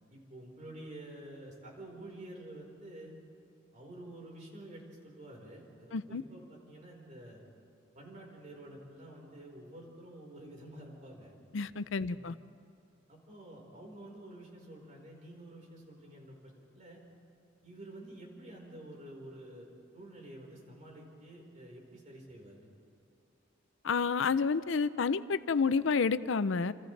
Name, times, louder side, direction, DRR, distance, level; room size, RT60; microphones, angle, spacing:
voice 1, 0.1-3.1 3.7-7.4 7.9-11.4 12.0-12.3 13.1-17.0 17.6-22.7, right 1 dB, 40° right, -1 dB, 4.5 m, -49 dB
voice 2, 5.9-6.2 11.5-12.4 23.8-26.7, left 5 dB, 70° left, 14 dB, 0.5 m, -29 dB
29.0 x 27.5 x 3.3 m, 2.5 s
head